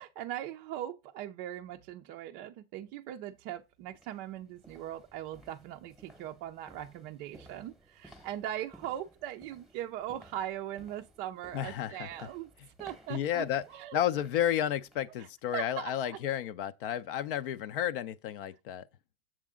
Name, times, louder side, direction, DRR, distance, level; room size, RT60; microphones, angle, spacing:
voice 1, 0.0-12.5 12.8-13.5 13.7-14.0 15.5-16.2, right 12 dB, 30° right, 0.4 m, -40 dB
sound 1, 3.9-15.1 15.5-15.7 16.2-16.3, right 1 dB, ahead, 1.0 m, -58 dB
voice 2, 11.5-12.3 12.6-12.7 13.1-13.6 13.9-18.9, left 10 dB, 55° left, 0.6 m, -32 dB
7.4 x 6.5 x 3.6 m
hypercardioid pair, 135°, 32 cm